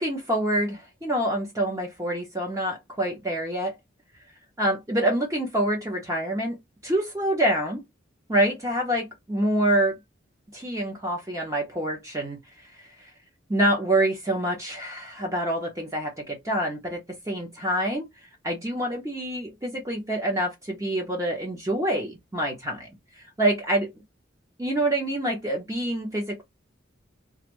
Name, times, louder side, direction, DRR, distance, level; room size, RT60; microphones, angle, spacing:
voice 1, 0.0-3.8 4.6-7.8 8.3-10.0 10.5-12.4 12.7-13.1 13.5-22.9 23.2-23.9 24.6-26.4, right 1 dB, 15° right, 0.8 m, -26 dB
2.6 x 2.4 x 3.0 m
head